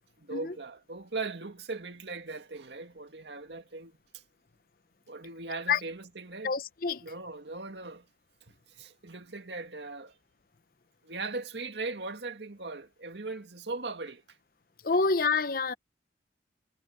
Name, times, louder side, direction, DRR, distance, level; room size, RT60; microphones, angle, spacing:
voice 1, 0.2-4.2 5.1-6.5 7.0-8.1 8.5-10.2 11.0-14.2, right 3 dB, 80° right, 2.1 m, -39 dB
voice 2, 6.4-7.1 14.8-15.7, left 4 dB, 55° left, 0.7 m, -27 dB
head